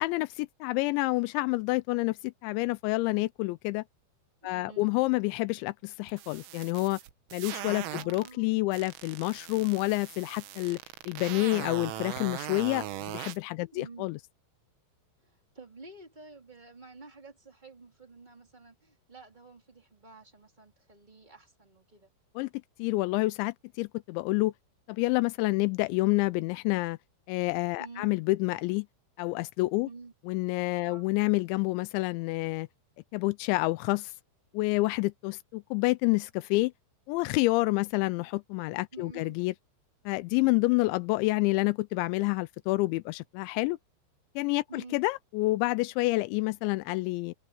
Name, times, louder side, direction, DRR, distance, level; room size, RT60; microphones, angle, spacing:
voice 1, 0.0-3.8 4.4-7.0 7.3-10.8 11.1-14.2 22.4-22.5 22.8-24.5 24.9-27.0 27.3-28.9 29.2-29.9 30.3-32.7 33.1-34.1 34.5-36.7 37.1-39.5 40.1-43.8 44.4-47.3, left 22 dB, 85° left, 2.7 m, -28 dB
voice 2, 4.4-4.9 7.9-8.9 13.7-14.1 15.2-22.1 27.8-28.1 29.8-30.1 30.8-31.1 38.9-39.4 44.7-45.0, right 3 dB, 10° right, 2.7 m, -50 dB
sound 1, 6.1-8.3 8.7-13.4, right 15 dB, 85° right, 3.9 m, -40 dB
omnidirectional pair, 5.7 m